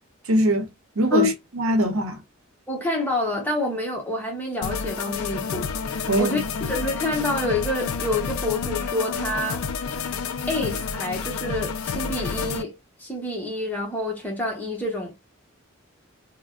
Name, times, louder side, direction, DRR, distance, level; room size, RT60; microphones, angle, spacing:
voice 1, 0.3-0.7 1.0-2.2 6.1-6.4, right 1 dB, 80° right, 0.8 m, -22 dB
voice 2, 2.7-9.6 10.5-12.7 13.0-15.1, left 2 dB, 10° left, 0.9 m, -27 dB
sound 1, 4.6-12.6, left 6 dB, 85° left, 0.4 m, -29 dB
3.4 x 2.1 x 2.3 m
head